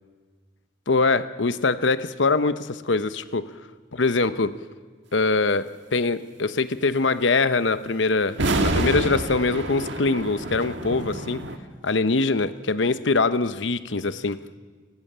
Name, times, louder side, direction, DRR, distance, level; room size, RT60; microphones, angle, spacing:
voice 1, 0.9-3.5 3.9-4.5 5.1-11.4 11.8-14.4, left 3 dB, 80° left, 12 dB, 0.9 m, -23 dB
sound 1, 8.3-11.6, right 1 dB, 75° right, 1.7 m, -27 dB
29.0 x 16.5 x 6.8 m, 1.5 s
head